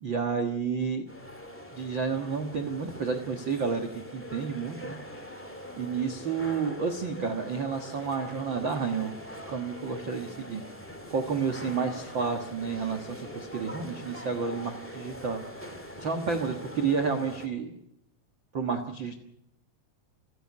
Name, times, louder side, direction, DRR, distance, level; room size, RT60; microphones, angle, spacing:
voice 1, 0.0-1.1 1.7-5.0 5.7-9.2 9.5-10.6 11.1-15.4 16.0-17.7 18.5-19.2, right 5 dB, 80° right, 5 dB, 1.0 m, -30 dB
sound 1, 1.1-17.5, equal, 10° left, 0.7 m, -43 dB
28.5 x 10.5 x 9.5 m, 0.78 s
omnidirectional pair, 4.7 m